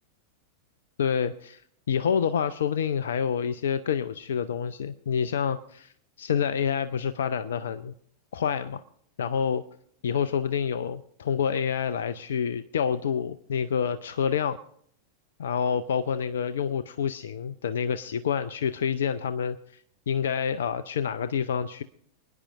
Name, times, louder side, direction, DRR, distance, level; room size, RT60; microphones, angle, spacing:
voice 1, 1.0-1.6 1.9-5.9 6.2-7.9 8.3-8.8 9.2-9.6 10.0-14.6 15.4-19.8 20.1-21.8, left 7 dB, 65° left, 14 dB, 0.4 m, -28 dB
28.5 x 10.0 x 2.5 m, 0.65 s
figure-of-eight pair, 90°, 0 cm